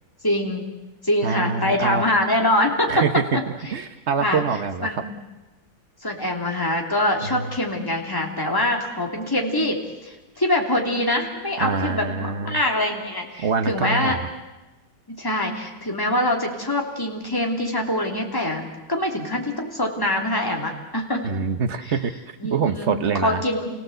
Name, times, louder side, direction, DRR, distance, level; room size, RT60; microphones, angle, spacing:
voice 1, 0.2-0.6 1.0-3.4 4.2-4.4 4.8-5.2 6.0-14.2 15.1-21.3 21.8-21.9 22.4-22.9 23.2-23.7, left 1 dB, 10° left, 0 dB, 2.9 m, -24 dB
voice 2, 1.2-2.0 2.9-3.2 3.7-4.9 7.2-7.5 11.6-12.6 13.4-14.3 21.2-23.4, right 5 dB, 45° right, 10 dB, 1.0 m, -25 dB
29.0 x 17.5 x 7.9 m, 1.1 s
omnidirectional pair, 2.2 m